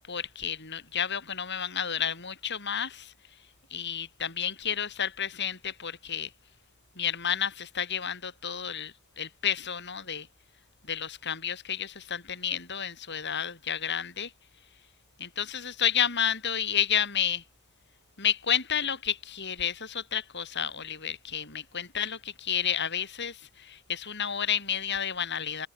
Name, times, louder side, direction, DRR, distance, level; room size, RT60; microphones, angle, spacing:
voice 1, 0.1-3.1 3.7-6.3 7.0-10.3 10.9-14.3 15.2-17.4 18.2-25.7, left 8 dB, 50° left, 7.9 m, -31 dB
head